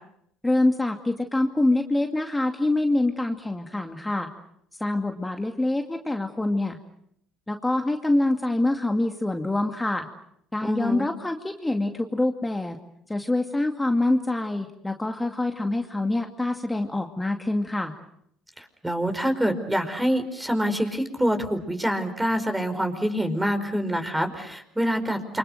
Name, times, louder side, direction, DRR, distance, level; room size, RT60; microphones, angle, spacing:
voice 1, 0.4-4.3 4.8-6.8 7.5-10.1 10.5-12.8 13.1-17.9, left 2 dB, 10° left, 4 dB, 2.4 m, -25 dB
voice 2, 10.6-11.1 18.6-25.4, equal, 10° right, 8 dB, 5.0 m, -26 dB
29.0 x 24.5 x 6.5 m, 0.72 s
hypercardioid pair, 65°, 0 cm